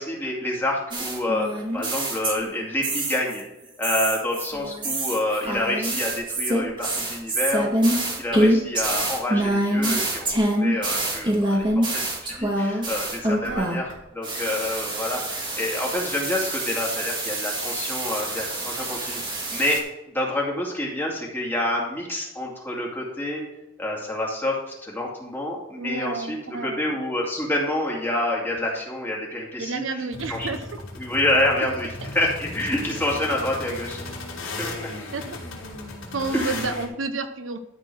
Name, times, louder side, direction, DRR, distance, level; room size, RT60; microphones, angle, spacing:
voice 1, 0.0-3.5 3.8-19.2 19.5-19.8 20.1-23.4 23.8-30.5 31.0-34.0 34.4-34.9 36.3-36.6, left 1 dB, 10° left, -3 dB, 2.4 m, -28 dB
sound 1, 0.9-3.4 3.8-13.9 14.2-19.8, right 1 dB, 25° right, 2.1 m, -26 dB
voice 2, 25.8-26.9 29.6-30.8 31.6-32.1 35.1-35.4 36.1-37.6, right 3 dB, 70° right, 8 dB, 0.8 m, -31 dB
sound 2, 30.1-36.9, left 2 dB, 90° left, 3.0 m, -36 dB
12.5 x 4.5 x 6.2 m, 0.96 s
head